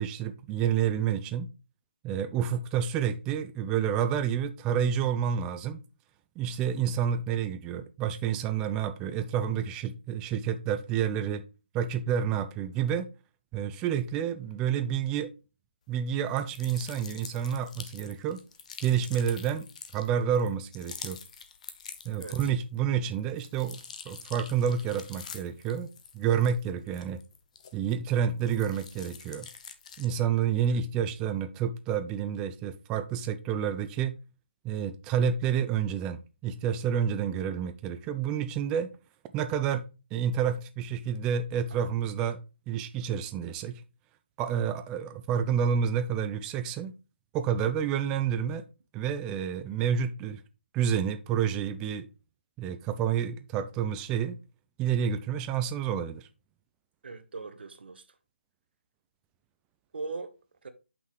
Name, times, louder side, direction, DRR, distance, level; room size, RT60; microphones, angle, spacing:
voice 1, 0.0-1.5 2.0-5.8 6.4-11.4 11.7-13.1 13.5-15.3 15.9-18.4 18.8-19.7 19.9-21.2 22.0-25.9 26.1-27.2 27.7-29.5 30.0-34.2 34.6-38.9 39.3-39.8 40.1-42.4 42.7-43.8 44.4-46.9 47.3-48.7 48.9-50.4 50.7-52.1 52.6-54.4 54.8-56.3, right 8 dB, 10° right, 0.3 m, -29 dB
sound 1, 16.3-22.8 23.1-28.0 28.4-30.2, left 6 dB, 35° left, 0.8 m, -46 dB
voice 2, 57.0-58.0 59.9-60.3 60.6-60.7, right 3 dB, 60° right, 1.0 m, -39 dB
7.2 x 5.8 x 3.1 m
figure-of-eight pair, 160°, 6 cm